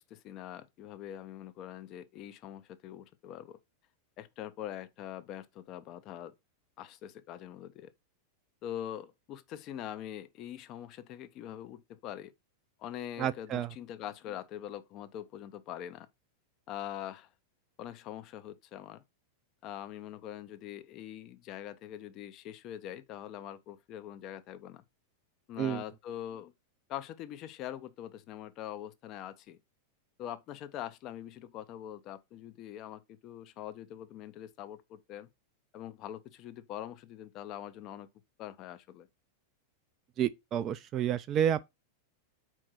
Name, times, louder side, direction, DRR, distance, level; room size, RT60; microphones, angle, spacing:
voice 1, 0.0-3.6 4.2-6.3 6.8-7.9 8.6-12.3 12.8-16.1 16.7-17.3 17.8-19.0 19.6-24.8 25.5-26.5 26.9-29.6 30.2-35.3 35.7-38.1 38.4-39.1, left 11 dB, 35° left, 0.6 m, -43 dB
voice 2, 13.2-13.7 25.6-25.8 40.2-41.6, right 10 dB, 30° right, 0.4 m, -30 dB
4.6 x 4.3 x 5.8 m
figure-of-eight pair, 90°, 0 cm